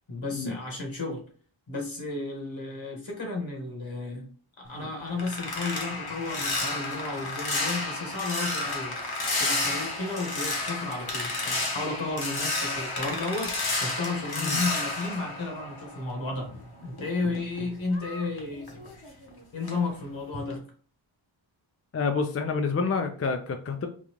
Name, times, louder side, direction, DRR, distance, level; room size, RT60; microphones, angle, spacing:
voice 1, 0.1-1.2 1.7-4.3 4.6-9.0 9.4-13.5 13.8-18.7 19.0-19.2 19.5-20.6, left 3 dB, 65° left, 1 dB, 1.5 m, -33 dB
sound 1, 4.7-16.3 16.6-19.3 19.6-19.9 20.3-20.6, left 2 dB, 45° left, 1.1 m, -31 dB
voice 2, 21.9-23.9, left 4 dB, 30° left, 5 dB, 0.4 m, -28 dB
3.9 x 2.3 x 3.0 m, 0.43 s
cardioid pair, 60°, 50 cm